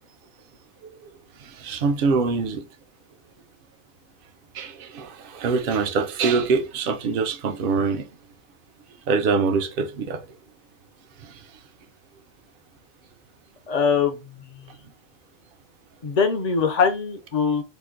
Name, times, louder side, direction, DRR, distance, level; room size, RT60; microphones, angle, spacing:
voice 1, 1.4-2.6 4.5-8.0 9.1-10.2 11.2-11.3, right 4 dB, 55° right, 0.7 m, -24 dB
voice 2, 13.7-14.7 16.0-17.6, left 5 dB, 45° left, 0.6 m, -23 dB
2.9 x 2.5 x 3.7 m
omnidirectional pair, 1.2 m